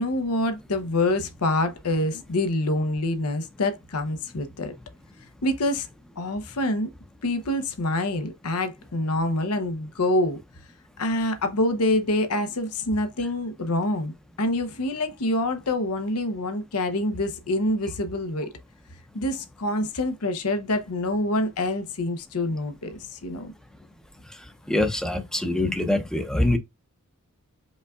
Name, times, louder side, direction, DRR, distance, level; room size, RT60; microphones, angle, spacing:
voice 1, 0.0-4.7 5.4-5.9 6.2-6.9 7.2-10.4 11.0-14.1 14.4-18.5 19.1-23.5, left 1 dB, 75° left, 0.8 m, -26 dB
voice 2, 24.7-26.6, left 1 dB, 5° left, 0.6 m, -24 dB
5.3 x 3.5 x 2.3 m
head